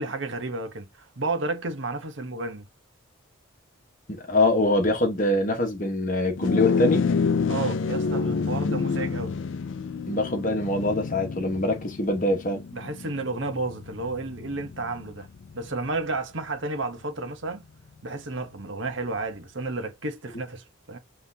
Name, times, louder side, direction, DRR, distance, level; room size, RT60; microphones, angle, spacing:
voice 1, 0.0-2.7 7.5-9.3 12.7-15.3 15.5-17.7 18.0-21.0, right 3 dB, 60° right, 1.1 m, -32 dB
voice 2, 4.1-7.1 8.6-8.8 10.1-12.6, left 1 dB, 40° left, 1.3 m, -24 dB
sound 1, 6.4-16.0, left 5 dB, 60° left, 0.4 m, -28 dB
5.4 x 3.3 x 2.8 m
head